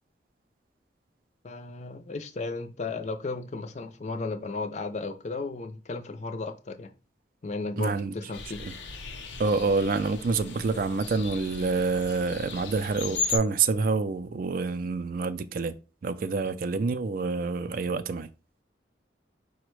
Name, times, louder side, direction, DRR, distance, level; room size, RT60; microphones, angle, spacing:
voice 1, 1.4-6.9 7.4-8.6, left 3 dB, 35° left, 0.4 m, -34 dB
voice 2, 7.8-8.1 8.6-8.7 9.4-15.8 16.0-18.3, right 4 dB, 50° right, 0.4 m, -27 dB
sound 1, 8.3-13.4, left 5 dB, 75° left, 0.7 m, -36 dB
4.9 x 2.1 x 4.6 m
head